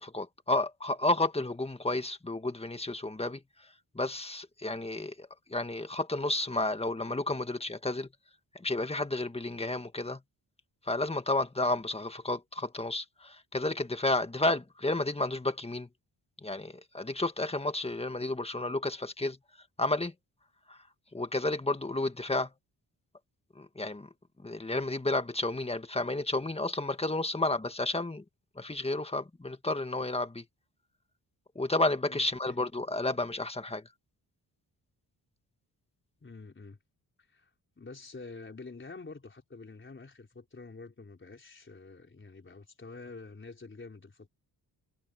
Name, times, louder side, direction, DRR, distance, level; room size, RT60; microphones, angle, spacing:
voice 1, 0.0-3.4 3.9-8.1 8.5-10.2 10.8-15.9 16.4-19.4 19.8-20.1 20.7-20.8 21.1-22.5 23.5-24.1 24.4-28.2 28.6-30.4 31.5-33.9, left 2 dB, 15° left, 1.6 m, -31 dB
voice 2, 32.1-32.6 36.2-36.8 37.3-37.5 37.8-44.3, left 3 dB, 30° left, 4.3 m, -47 dB
wide cardioid pair, 105°, 39 cm